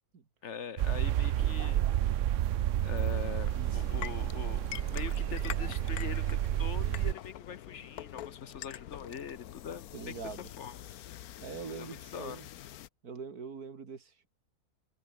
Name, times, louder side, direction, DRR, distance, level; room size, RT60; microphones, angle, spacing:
voice 1, 0.4-1.8 2.8-9.9 10.6-10.8 11.7-12.4, left 7 dB, 55° left, 1.1 m, -43 dB
sound 1, 0.8-7.1, right 12 dB, 65° right, 0.9 m, -30 dB
sound 2, 3.0-12.9, left 12 dB, 75° left, 1.3 m, -46 dB
voice 2, 9.9-10.5 11.4-12.5 13.0-14.3, right 5 dB, 80° right, 2.7 m, -43 dB
open air
omnidirectional pair, 1.6 m